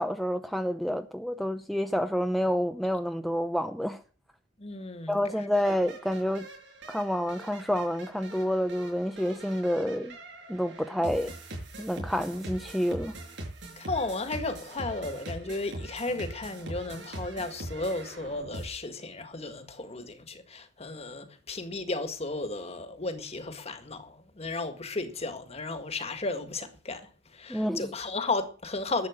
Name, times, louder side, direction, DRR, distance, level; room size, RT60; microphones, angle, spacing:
voice 1, 0.0-4.0 5.1-6.5 6.9-10.2 10.5-11.3 11.8-13.1 27.5-27.9, equal, ahead, 0.7 m, -28 dB
voice 2, 4.6-5.3 13.8-29.1, left 3 dB, 35° left, 1.8 m, -34 dB
sound 1, 5.5-18.7, right 1 dB, 70° right, 6.3 m, -42 dB
12.0 x 8.4 x 7.3 m
head